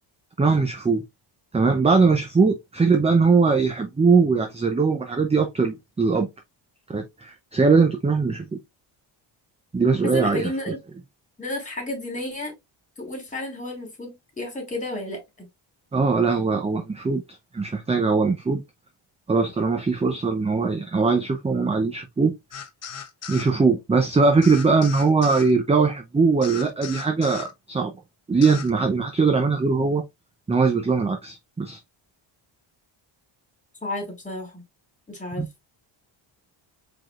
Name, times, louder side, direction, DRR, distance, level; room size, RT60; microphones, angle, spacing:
voice 1, 0.4-1.0 1.5-6.3 6.9-8.6 9.7-10.7 15.9-17.2 17.5-18.6 19.3-22.3 23.3-27.9 28.3-30.0 30.5-31.8 35.4-35.5, right 4 dB, 15° right, 0.5 m, -21 dB
voice 2, 10.0-10.8 11.4-12.5 13.0-15.5 33.8-34.6 35.1-35.4, left 1 dB, 15° left, 2.7 m, -32 dB
sound 1, 22.5-23.5 24.4-25.5 26.4-27.5 28.4-28.7, left 7 dB, 30° left, 0.9 m, -37 dB
4.8 x 3.9 x 2.5 m
cardioid pair, 135°, 49 cm